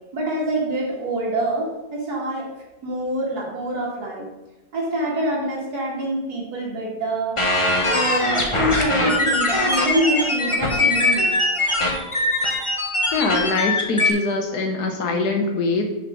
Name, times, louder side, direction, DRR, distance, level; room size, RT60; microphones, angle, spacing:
voice 1, 0.1-2.5 2.8-4.3 4.7-7.4 7.8-11.3, right 1 dB, 60° right, -4 dB, 2.6 m, -25 dB
sound 1, 7.4-14.1, left 2 dB, 20° left, 1.0 m, -21 dB
voice 2, 13.1-15.8, left 3 dB, 65° left, 3 dB, 1.7 m, -23 dB
6.7 x 4.9 x 6.2 m, 0.99 s
omnidirectional pair, 1.9 m